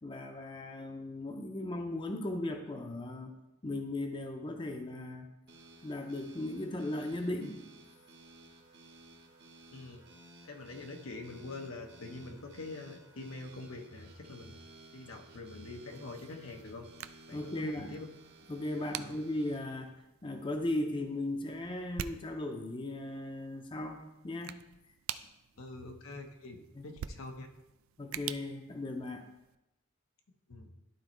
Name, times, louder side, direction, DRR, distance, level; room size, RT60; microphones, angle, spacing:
voice 1, 0.0-3.3 3.6-5.3 5.8-7.6 17.3-17.9 18.5-19.9 20.2-24.6 26.7-26.9 28.0-29.2, left 1 dB, 25° left, 4 dB, 0.6 m, -37 dB
sound 1, 5.5-19.6, right 2 dB, 55° right, 1.1 m, -56 dB
voice 2, 10.4-14.5 14.9-16.9 17.3-18.1 18.9-19.1 25.6-27.5 30.5-30.7, left 2 dB, 90° left, 3 dB, 0.9 m, -45 dB
sound 2, 15.9-29.6, right 10 dB, 80° right, 0.3 m, -48 dB
12.0 x 4.3 x 3.1 m, 0.93 s
head